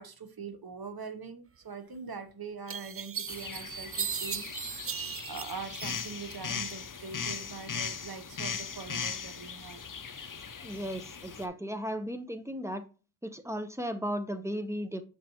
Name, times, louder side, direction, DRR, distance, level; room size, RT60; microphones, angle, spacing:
voice 1, 0.0-4.4 5.3-10.7, right 5 dB, 65° right, 1.0 m, -43 dB
sound 1, 2.0-2.1 2.7-6.4 6.7-7.4, right 7 dB, 35° right, 0.4 m, -37 dB
sound 2, 3.3-11.5, left 6 dB, 50° left, 0.7 m, -39 dB
voice 2, 10.6-12.8 13.2-15.0, equal, 5° right, 0.9 m, -35 dB
6.8 x 5.4 x 3.0 m
wide cardioid pair, 40°, 40 cm